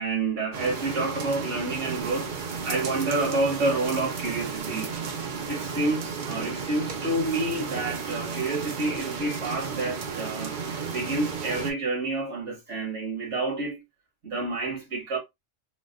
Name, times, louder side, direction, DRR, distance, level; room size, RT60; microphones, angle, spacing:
voice 1, 0.0-5.0 5.5-10.6 10.9-13.8 14.2-15.2, right 2 dB, 70° right, 1.8 m, -29 dB
sound 1, 0.5-11.7, right 5 dB, 50° right, 0.6 m, -33 dB
3.9 x 2.2 x 2.5 m
omnidirectional pair, 1.3 m